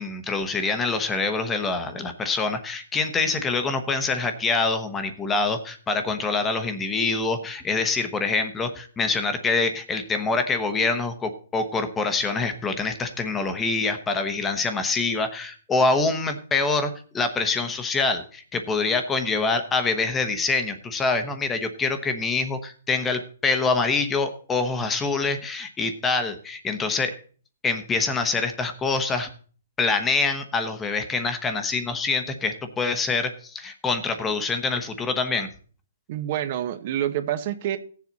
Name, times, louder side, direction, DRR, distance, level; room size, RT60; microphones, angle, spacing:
voice 1, 0.0-27.1 27.6-29.3 29.8-35.5, left 3 dB, 10° left, 1.0 m, -25 dB
voice 2, 36.1-37.8, right 11 dB, 40° right, 1.0 m, -27 dB
16.5 x 7.4 x 4.1 m
hypercardioid pair, 160°, 0 cm